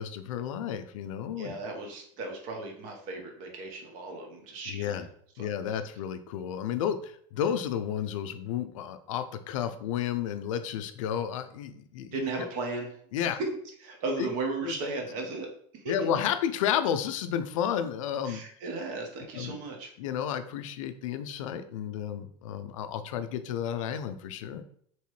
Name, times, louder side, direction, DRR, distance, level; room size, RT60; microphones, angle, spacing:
voice 1, 0.0-1.6 4.7-5.1 5.4-12.2 13.1-13.4 14.2-14.3 14.6-14.7 15.9-18.4 19.3-19.6 20.0-24.6, left 9 dB, 90° left, 10 dB, 0.4 m, -32 dB
voice 2, 1.4-5.1 5.4-5.5 12.1-12.9 13.3-13.5 13.8-15.5 15.7-15.8 18.2-19.9, right 3 dB, 55° right, 2 dB, 0.9 m, -35 dB
3.0 x 2.8 x 3.1 m, 0.62 s
supercardioid pair, 135°, 16 cm